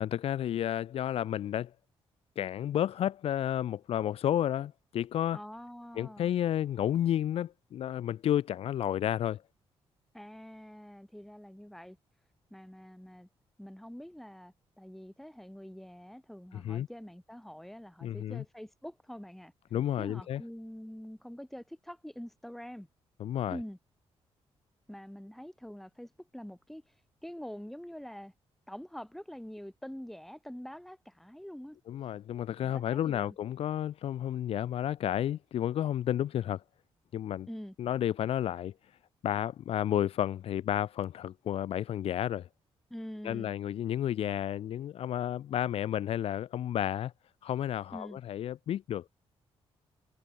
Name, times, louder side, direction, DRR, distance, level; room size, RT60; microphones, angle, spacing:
voice 1, 0.0-1.7 2.4-5.4 5.9-9.4 16.6-16.9 18.0-18.4 19.7-20.4 23.2-23.6 31.9-36.6 37.1-37.5 37.8-38.7 39.2-42.5 43.2-47.1 47.4-49.0, left 11 dB, 70° left, 0.9 m, -31 dB
voice 2, 5.3-6.3 10.1-12.0 12.5-13.3 13.6-19.5 20.0-22.9 23.5-23.8 24.9-26.9 27.2-28.3 28.7-31.8 32.6-33.4 37.5-37.8 42.9-43.6 47.9-48.2, equal, ahead, 7.6 m, -45 dB
cardioid pair, 140°, 10 cm